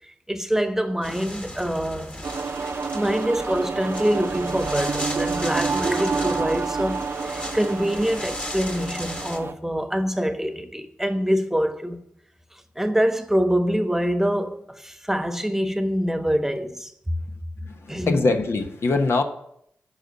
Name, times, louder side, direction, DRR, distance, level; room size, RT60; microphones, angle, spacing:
voice 1, 0.3-2.1 2.9-12.0 12.8-16.9 17.9-18.2, equal, 5° right, 1.2 m, -25 dB
sound 1, 1.0-9.4, left 1 dB, 25° left, 2.0 m, -36 dB
sound 2, 2.2-9.5, right 5 dB, 55° right, 0.7 m, -29 dB
voice 2, 17.6-19.2, left 3 dB, 65° left, 1.1 m, -23 dB
9.1 x 5.8 x 8.0 m
supercardioid pair, 40°, 5 cm